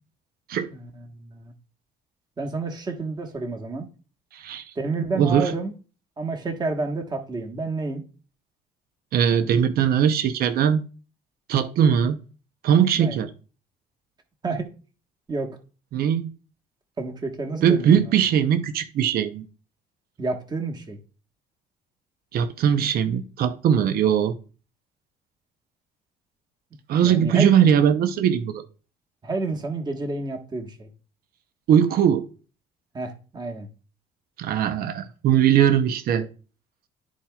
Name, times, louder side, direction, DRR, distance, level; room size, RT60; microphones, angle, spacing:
voice 1, 0.7-1.5 2.4-3.9 4.7-5.7 6.2-8.0 12.9-13.2 14.4-14.7 15.3-15.5 17.0-18.1 20.2-21.0 27.0-27.5 29.2-30.9 32.9-33.7, right 3 dB, 25° right, 1.3 m, -30 dB
voice 2, 4.3-4.7 5.1-5.5 9.1-10.8 11.5-12.2 12.6-13.3 15.9-16.3 17.6-19.5 22.3-24.3 26.9-28.6 31.7-32.3 34.4-36.3, right 8 dB, 65° right, 0.7 m, -20 dB
12.5 x 4.4 x 2.3 m
cardioid pair, 110°, 17 cm